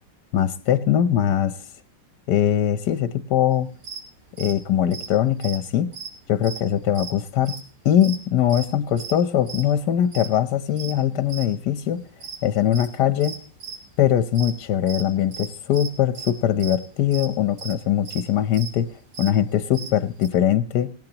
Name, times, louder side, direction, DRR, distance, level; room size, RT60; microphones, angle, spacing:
voice 1, 0.3-1.6 2.3-3.7 4.4-5.9 6.3-7.5 7.8-12.0 12.4-13.4 14.0-18.9 19.2-20.9, left 10 dB, 65° left, 12 dB, 1.2 m, -21 dB
sound 1, 3.7-4.0 4.4-4.6 4.9-6.6 6.9-7.1 7.4-7.7 8.0-8.7 9.0-9.1 9.5-10.3 10.7-11.5 11.8-13.9 14.2-14.5 14.8-20.3, right 6 dB, 85° right, 4.0 m, -37 dB
18.5 x 17.5 x 2.9 m, 0.40 s
omnidirectional pair, 2.3 m